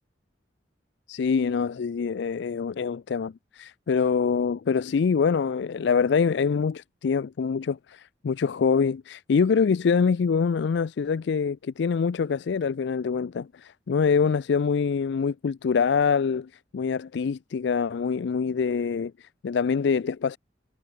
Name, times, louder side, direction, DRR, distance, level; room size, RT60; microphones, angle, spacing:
voice 1, 1.1-20.4, left 5 dB, 65° left, 0.4 m, -25 dB
head